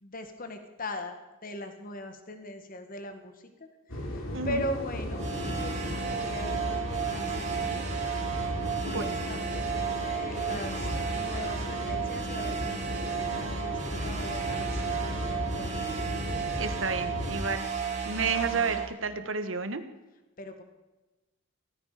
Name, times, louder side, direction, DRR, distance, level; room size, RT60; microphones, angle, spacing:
voice 1, 0.0-3.3 3.6-3.7 4.0-15.9 20.4-20.6, left 1 dB, 45° left, 7 dB, 1.9 m, -40 dB
sound 1, 3.9-17.4, equal, 80° left, 3.3 m, -36 dB
sound 2, 5.1-18.8, right 6 dB, 35° right, 3.4 m, -33 dB
voice 2, 8.9-9.2 16.6-17.6 18.0-19.8, right 4 dB, 70° right, 10 dB, 1.4 m, -31 dB
17.0 x 14.5 x 5.1 m, 1.1 s
head